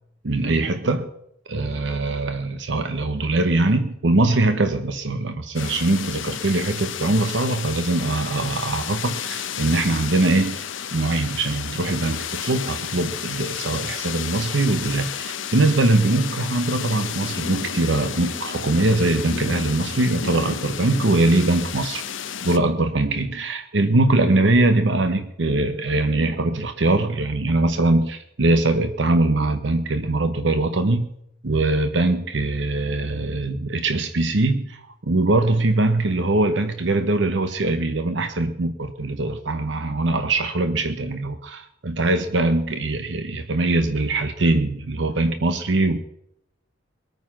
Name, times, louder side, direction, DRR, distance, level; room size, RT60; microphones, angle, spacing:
voice 1, 0.2-1.1 1.5-22.0 22.4-31.1 31.4-46.0, right 2 dB, 65° right, 8 dB, 0.9 m, -22 dB
sound 1, 5.5-22.6, left 8 dB, 90° left, 1.0 m, -32 dB
21.0 x 9.3 x 5.9 m, 0.77 s
head